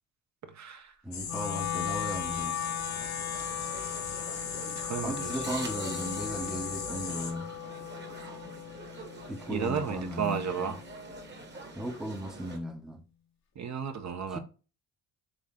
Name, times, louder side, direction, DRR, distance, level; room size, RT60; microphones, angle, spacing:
voice 1, 0.4-1.0 4.8-5.4 9.5-10.8 13.6-14.4, right 7 dB, 45° right, 0.7 m, -33 dB
voice 2, 1.0-2.6 5.0-7.6 9.3-10.8 11.8-13.0 14.3-14.4, equal, ahead, 0.7 m, -37 dB
sound 1, 1.1-7.3, left 6 dB, 75° left, 1.1 m, -38 dB
Wind instrument woodwind instrument, 1.2-11.4, left 10 dB, 45° left, 0.7 m, -38 dB
sound 2, 2.2-12.6, right 3 dB, 30° right, 1.2 m, -46 dB
3.9 x 3.2 x 3.6 m
supercardioid pair, 60°, 38 cm